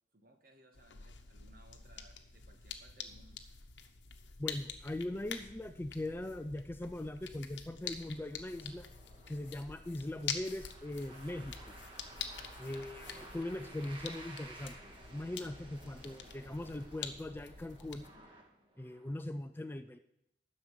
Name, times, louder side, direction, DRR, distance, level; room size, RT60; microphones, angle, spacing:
voice 1, 0.1-3.4, right 1 dB, 55° right, 5 dB, 1.3 m, -63 dB
sound 1, 0.7-18.1, left 7 dB, 80° left, 1.0 m, -47 dB
voice 2, 4.4-8.9 9.3-11.7 12.6-18.1 18.8-20.0, left 1 dB, 10° left, 8 dB, 0.4 m, -40 dB
sound 2, 8.0-19.1, right 2 dB, 30° right, 1.7 m, -55 dB
11.5 x 6.5 x 7.4 m, 0.81 s
head